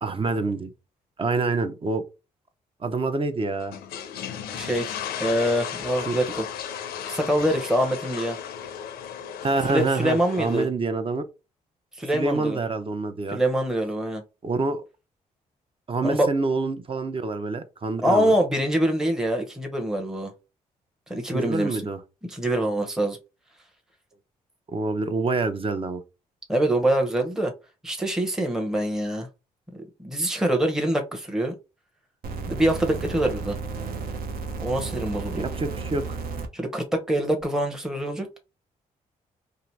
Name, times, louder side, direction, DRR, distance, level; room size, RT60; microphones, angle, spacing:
voice 1, 0.0-0.7 1.2-2.0 2.8-3.8 6.0-6.2 9.4-11.2 12.1-13.4 14.4-14.8 15.9-18.3 21.3-22.0 24.7-26.0 35.3-36.2, right 3 dB, 35° right, 0.7 m, -26 dB
sound 1, 3.6-10.6, left 8 dB, 80° left, 0.5 m, -35 dB
voice 2, 4.5-6.4 7.1-8.4 9.7-10.7 12.0-12.6 13.3-14.2 16.0-16.3 18.0-20.3 21.1-21.8 22.2-23.2 26.5-27.5 27.8-29.3 29.8-31.5 32.5-33.6 34.6-35.4 36.5-38.4, right 1 dB, 5° right, 0.8 m, -25 dB
sound 2, 32.2-36.5 37.4-37.5, right 4 dB, 65° right, 0.7 m, -33 dB
2.8 x 2.5 x 3.2 m
supercardioid pair, 55°, 16 cm